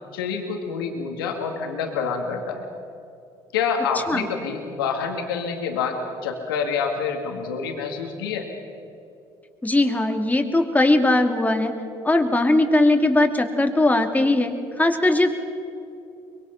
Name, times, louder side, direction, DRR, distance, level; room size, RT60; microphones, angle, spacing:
voice 1, 0.1-2.6 3.5-8.5, left 6 dB, 90° left, 3 dB, 2.2 m, -27 dB
voice 2, 9.6-11.7 12.0-15.4, left 2 dB, 15° left, 4 dB, 2.6 m, -19 dB
23.5 x 22.0 x 5.9 m, 2.6 s
hypercardioid pair, 65°, 12 cm